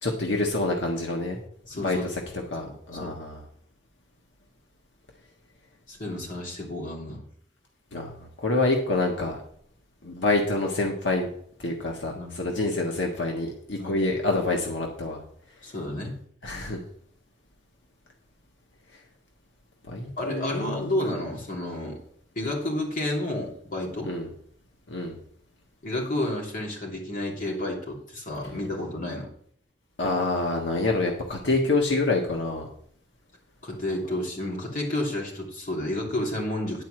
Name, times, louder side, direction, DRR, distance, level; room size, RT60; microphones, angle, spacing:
voice 1, 0.0-1.4 1.7-2.0 2.5-3.4 7.9-8.1 8.4-9.4 10.0-11.3 11.6-15.2 16.4-16.8 19.9-20.9 24.1-24.3 24.9-25.2 30.0-32.7, left 2 dB, 80° left, 0 dB, 1.5 m, -27 dB
voice 2, 1.7-2.1 2.4-2.7 3.0-3.1 5.9-7.2 12.1-12.5 13.8-14.0 15.6-16.2 20.2-22.0 22.3-24.1 25.8-29.3 33.6-36.9, left 1 dB, 45° left, -2 dB, 3.0 m, -31 dB
11.0 x 4.6 x 7.6 m, 0.63 s
head